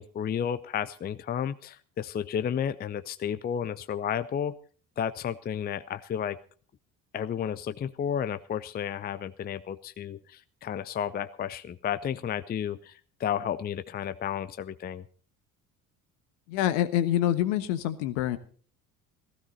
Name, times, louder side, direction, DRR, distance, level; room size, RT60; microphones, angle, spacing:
voice 1, 0.0-4.5 5.0-6.4 7.1-15.0, left 8 dB, 20° left, 14 dB, 0.6 m, -32 dB
voice 2, 16.5-18.4, left 12 dB, 60° left, 12 dB, 1.3 m, -26 dB
16.0 x 15.5 x 4.1 m, 0.43 s
figure-of-eight pair, 55°, 42 cm